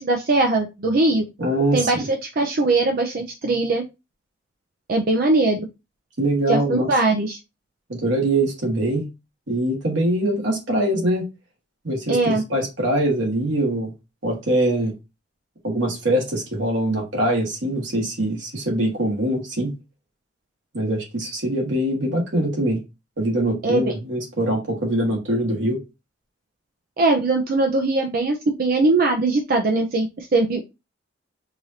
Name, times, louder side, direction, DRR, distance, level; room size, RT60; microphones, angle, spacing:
voice 1, 0.0-1.2 1.7-3.8 4.9-5.7 6.5-7.4 12.1-12.4 23.6-23.8 27.0-30.6, right 2 dB, 50° right, 0.5 m, -20 dB
voice 2, 1.4-2.1 6.2-6.9 7.9-9.1 9.5-11.3 11.8-13.9 14.2-14.9 15.6-19.7 20.7-22.8 23.2-25.8, right 1 dB, 80° right, 1.7 m, -23 dB
4.8 x 2.6 x 2.8 m
head